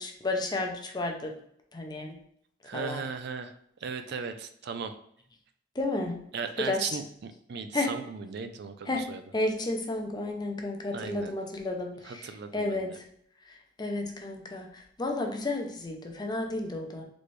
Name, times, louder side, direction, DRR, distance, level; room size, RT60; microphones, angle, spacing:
voice 1, 0.0-1.3 1.7-2.2 2.7-3.0 5.7-6.2 6.6-7.0 7.7-7.9 8.9-9.0 9.3-13.0 13.5-17.0, left 2 dB, 25° left, 2 dB, 0.6 m, -32 dB
voice 2, 2.6-3.5 3.8-5.0 6.3-9.2 10.9-11.3 12.0-12.9, right 5 dB, 60° right, 9 dB, 0.4 m, -37 dB
4.1 x 3.2 x 3.1 m, 0.68 s
head